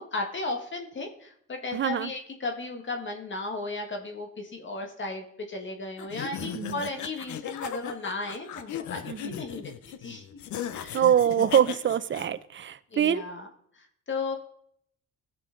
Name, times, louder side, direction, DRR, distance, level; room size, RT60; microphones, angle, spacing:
voice 1, 0.0-9.7 10.0-10.4 10.7-11.0 12.9-13.5 13.7-14.4, left 3 dB, 40° left, 4 dB, 1.5 m, -35 dB
voice 2, 1.7-2.1 6.4-6.8 9.1-9.4 10.9-13.2, right 9 dB, 40° right, 15 dB, 0.6 m, -24 dB
sound 1, 6.0-12.3, left 10 dB, 70° left, 0.8 m, -37 dB
17.0 x 6.8 x 3.8 m, 0.69 s
cardioid pair, 90°, 30 cm